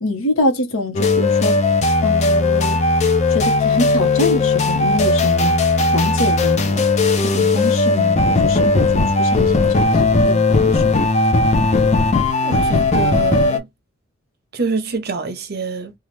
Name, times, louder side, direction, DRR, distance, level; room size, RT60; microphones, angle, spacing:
voice 1, 0.0-1.5 2.0-2.8 3.3-6.8 7.2-10.8, left 1 dB, 85° left, 0.9 m, -24 dB
sound 1, 0.9-13.6, left 3 dB, 35° left, 0.5 m, -17 dB
voice 2, 12.4-13.7 14.5-15.9, right 4 dB, 50° right, 0.7 m, -25 dB
3.0 x 2.3 x 3.1 m
head